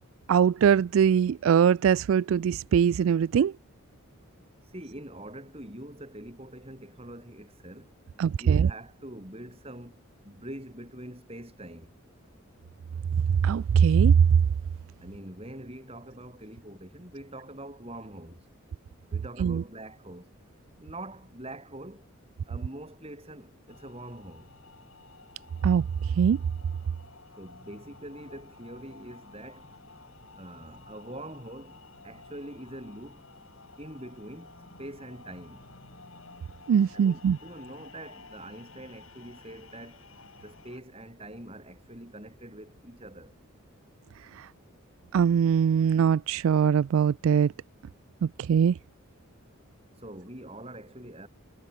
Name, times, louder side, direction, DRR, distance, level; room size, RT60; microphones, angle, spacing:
voice 1, 0.3-3.5 8.2-8.7 13.4-14.3 19.4-19.6 25.6-26.4 36.7-37.4 44.3-44.5 45.1-47.5 48.2-48.8, right 7 dB, 70° right, 0.3 m, -22 dB
voice 2, 4.7-7.9 8.4-11.9 15.0-18.5 19.1-20.3 20.8-22.1 22.4-24.5 27.4-29.7 30.4-31.8 32.0-33.3 33.8-35.6 36.9-40.0 40.4-43.3 50.0-51.3, right 1 dB, 25° right, 7.8 m, -44 dB
sound 1, 23.7-40.8, left 3 dB, 70° left, 5.9 m, -52 dB
head